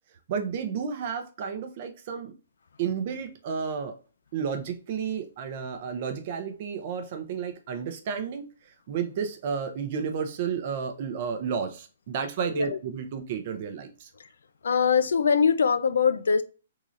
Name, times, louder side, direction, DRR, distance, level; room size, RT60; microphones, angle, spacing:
voice 1, 0.3-2.3 2.8-3.9 4.3-14.1, right 6 dB, 35° right, 0.5 m, -32 dB
voice 2, 12.4-12.8 14.2-14.3 14.6-16.4, left 6 dB, 80° left, 0.4 m, -23 dB
3.7 x 3.1 x 2.5 m
hypercardioid pair, 170°, 0 cm